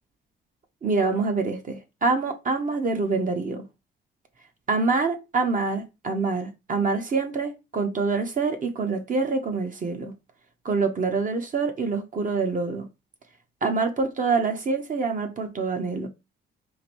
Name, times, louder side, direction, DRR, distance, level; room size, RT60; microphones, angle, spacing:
voice 1, 0.8-3.6 4.7-10.1 10.6-12.9 13.6-16.1, right 4 dB, 40° right, 0.8 m, -26 dB
4.9 x 2.6 x 3.0 m
cardioid pair, 90°, 20 cm